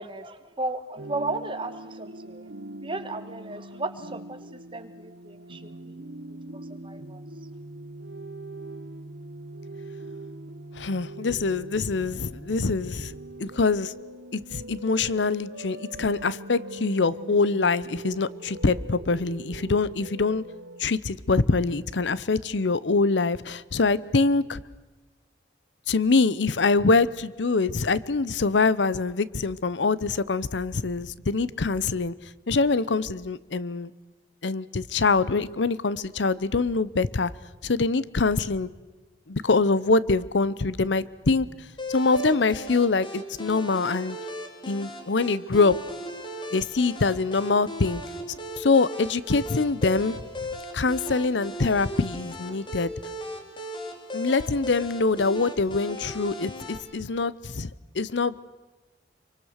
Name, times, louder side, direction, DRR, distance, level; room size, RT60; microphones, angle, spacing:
voice 1, 0.0-2.5 2.8-5.9 6.8-7.2, right 2 dB, 30° right, 9 dB, 1.7 m, -35 dB
sound 1, 1.0-20.8, right 2 dB, 85° right, 1.1 m, -42 dB
voice 2, 10.8-13.1 13.4-13.9 14.3-20.4 20.8-24.6 25.9-32.1 32.5-33.9 34.4-37.3 37.6-38.7 39.3-41.5 41.9-44.2 44.7-45.8 46.5-48.0 48.6-50.2 50.7-52.9 54.1-58.3, left 3 dB, 85° left, 18 dB, 0.8 m, -24 dB
sound 2, 41.8-56.8, equal, 25° left, 3.4 m, -37 dB
27.0 x 24.0 x 6.6 m, 1.2 s
head